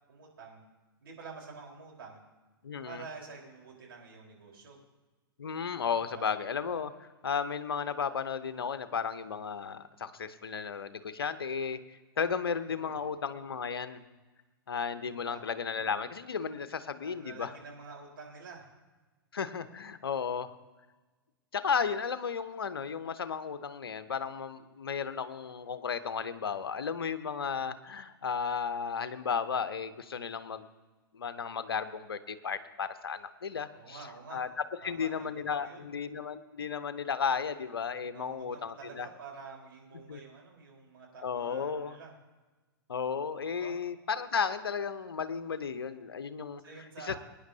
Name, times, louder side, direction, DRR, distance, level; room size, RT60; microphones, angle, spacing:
voice 1, 0.1-0.6 1.0-2.2 2.8-4.8 6.0-6.2 12.7-13.0 15.1-15.4 17.0-18.6 33.7-34.4 34.8-35.3 35.6-35.9 38.1-42.1 43.5-43.8 46.6-47.2, right 4 dB, 70° right, -1 dB, 4.1 m, -48 dB
voice 2, 2.6-3.0 5.4-14.0 14.7-17.5 19.3-20.5 21.5-30.7 31.1-34.0 34.3-34.5 34.8-39.1 40.1-40.2 41.2-42.0 42.9-46.6 47.1-47.2, left 6 dB, 75° left, 12 dB, 0.8 m, -34 dB
23.5 x 9.9 x 2.8 m, 1.2 s
figure-of-eight pair, 105°, 12 cm